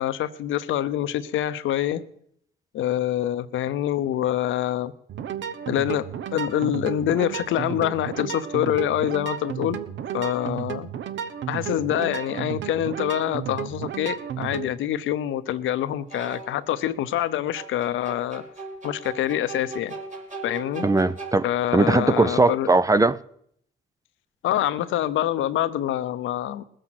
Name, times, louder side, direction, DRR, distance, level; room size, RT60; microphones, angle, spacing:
voice 1, 0.0-2.0 2.7-4.9 5.7-9.8 10.1-10.9 11.5-18.5 18.8-19.9 20.4-20.9 21.4-22.7 24.4-26.6, left 12 dB, 80° left, 0.8 m, -26 dB
sound 1, 5.1-14.7, right 9 dB, 70° right, 1.0 m, -33 dB
sound 2, 14.0-14.1 16.1-16.7 17.6-21.8, right 3 dB, 40° right, 2.7 m, -38 dB
voice 2, 20.8-21.5 21.7-23.2, right 3 dB, 15° right, 0.5 m, -19 dB
20.0 x 7.8 x 5.9 m
cardioid pair, 90°, 20 cm